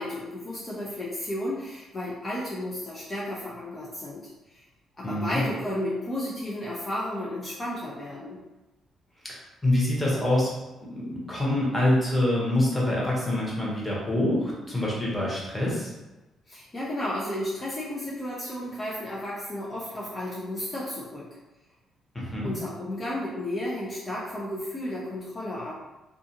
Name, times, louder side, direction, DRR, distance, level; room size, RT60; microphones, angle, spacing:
voice 1, 0.0-4.6 5.0-8.4 16.5-21.3 22.4-25.8, left 1 dB, 30° left, -7 dB, 0.6 m, -33 dB
voice 2, 5.0-5.4 9.2-9.4 9.6-10.5 10.8-15.9 22.1-22.5, left 1 dB, 5° left, -6 dB, 1.0 m, -25 dB
2.4 x 2.4 x 2.8 m, 1.1 s
cardioid pair, 90°, 0 cm